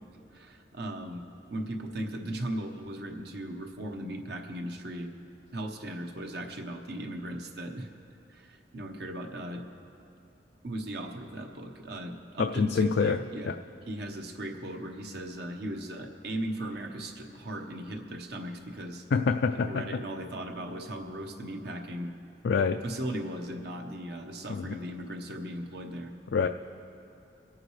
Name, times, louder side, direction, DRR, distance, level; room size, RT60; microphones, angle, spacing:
voice 1, 0.3-1.2 1.5-5.1 5.5-7.9 8.3-9.6 10.6-13.5 13.9-19.0 19.6-22.1 22.8-26.1, right 1 dB, 65° right, 3 dB, 1.1 m, -37 dB
voice 2, 12.4-13.2 13.5-13.6 19.1-19.8 22.4-22.8 24.5-24.6 26.3-26.5, left 5 dB, 60° left, 6 dB, 0.4 m, -25 dB
24.5 x 8.8 x 3.2 m, 3.0 s
head